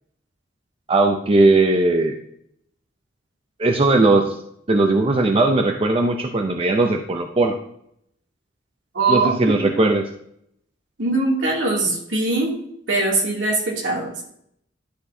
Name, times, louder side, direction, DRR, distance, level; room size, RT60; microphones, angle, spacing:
voice 1, 0.9-2.2 3.6-4.4 4.7-7.6 9.1-10.1, right 2 dB, 30° right, 4 dB, 0.5 m, -18 dB
voice 2, 8.9-9.6 11.0-12.5 12.9-14.2, right 2 dB, 70° right, -2 dB, 2.6 m, -21 dB
11.0 x 6.1 x 2.7 m, 0.71 s
head